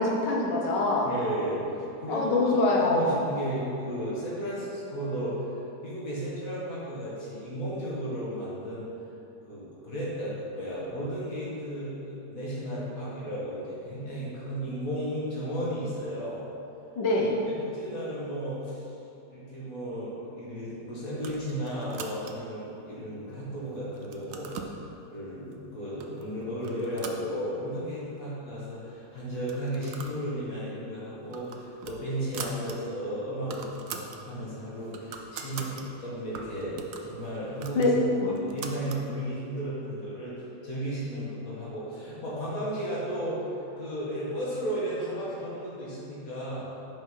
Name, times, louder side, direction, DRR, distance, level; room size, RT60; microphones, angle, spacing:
voice 1, 0.0-1.1 2.1-3.1 17.0-17.4 37.8-38.4, left 2 dB, 75° left, -2 dB, 1.6 m, -24 dB
voice 2, 1.0-1.6 2.0-2.5 2.8-5.5 5.8-8.9 9.4-16.4 17.5-18.8 19.3-24.5 25.1-36.8 37.0-37.9 38.4-40.3 40.6-43.4 43.8-46.6, equal, 50° left, -8 dB, 2.2 m, -34 dB
sound 1, 21.1-22.6 23.1-23.6 23.9-24.8 25.5-25.6 26.0-26.3 26.6-27.8 28.2-28.3 28.5-28.6 29.3-30.2 30.5-30.7 31.1-32.8 33.1-33.2 33.4-34.2 34.6-35.8 36.3-39.0, right 6 dB, 70° right, 0.8 m, -42 dB
5.8 x 5.6 x 4.7 m, 3.0 s
omnidirectional pair, 1.9 m